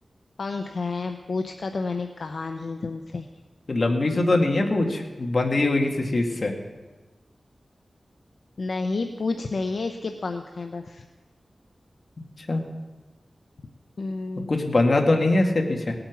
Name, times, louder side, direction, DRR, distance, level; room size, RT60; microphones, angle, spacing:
voice 1, 0.4-3.3 8.6-11.0 14.0-14.5, left 3 dB, 70° left, 5 dB, 0.7 m, -30 dB
voice 2, 3.7-6.5 12.5-12.6 14.5-15.9, left 2 dB, 50° left, 2 dB, 1.8 m, -22 dB
18.0 x 8.7 x 6.0 m, 1.2 s
wide cardioid pair, 90°, 0 cm